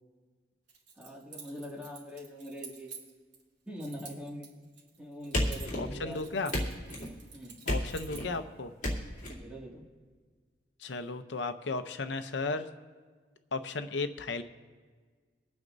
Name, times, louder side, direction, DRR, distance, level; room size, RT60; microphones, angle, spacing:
Keys jangling, 0.7-3.4 3.8-5.9 6.1-8.4, right 5 dB, 75° right, 3.1 m, -49 dB
voice 1, 1.0-2.9 3.7-4.5 5.0-6.4 7.3-7.6 7.8-8.0 9.3-9.8, equal, 5° right, -4 dB, 2.1 m, -43 dB
sound 1, 5.3-6.1 6.5-7.1 7.7-8.3 8.8-9.3, left 1 dB, 45° left, 2.9 m, -32 dB
voice 2, 5.8-6.5 7.7-8.7 10.8-12.7 13.5-14.4, left 3 dB, 80° left, 9 dB, 0.7 m, -34 dB
24.5 x 9.3 x 2.6 m, 1.5 s
head